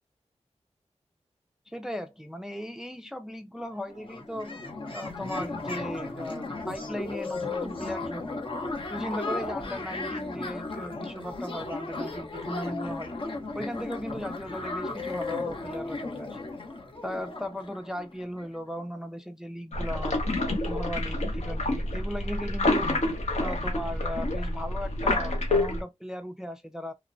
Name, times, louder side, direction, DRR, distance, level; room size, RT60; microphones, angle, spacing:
voice 1, 1.7-4.6 4.9-8.4 8.9-13.1 13.6-16.4 17.0-20.2 20.7-22.9 23.3-26.9, equal, 5° right, 0.3 m, -37 dB
sound 1, 3.6-3.7 3.9-18.5, left 3 dB, 45° left, 0.6 m, -35 dB
sound 2, 19.7-25.8, left 2 dB, 75° left, 0.9 m, -28 dB
3.0 x 2.0 x 2.4 m
wide cardioid pair, 95°, 12 cm